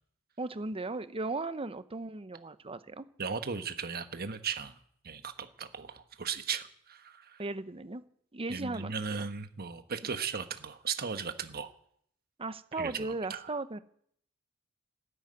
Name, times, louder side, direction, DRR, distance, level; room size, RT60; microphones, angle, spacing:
voice 1, 0.4-3.0 7.4-8.0 8.3-9.3 12.4-13.8, right 3 dB, 25° right, 13 dB, 0.8 m, -37 dB
voice 2, 3.2-4.8 5.0-7.4 8.5-11.7 12.8-13.5, right 6 dB, 45° right, 9 dB, 1.2 m, -37 dB
13.0 x 12.0 x 9.5 m, 0.67 s
head